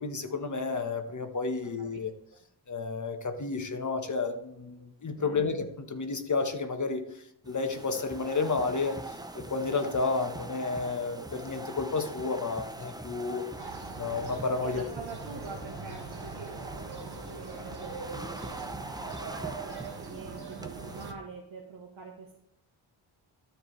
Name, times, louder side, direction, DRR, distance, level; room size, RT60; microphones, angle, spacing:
voice 1, 0.0-2.1 2.7-13.4 13.9-14.8, left 4 dB, 35° left, 6 dB, 1.3 m, -31 dB
voice 2, 5.1-5.5 14.6-18.8 19.2-22.4, right 4 dB, 70° right, 0 dB, 1.5 m, -45 dB
sound 1, 7.4-21.1, right 2 dB, 10° right, 0.6 m, -43 dB
sound 2, 13.6-21.1, right 4 dB, 50° right, 1.6 m, -42 dB
13.0 x 4.7 x 3.3 m, 0.78 s
cardioid pair, 80°, 48 cm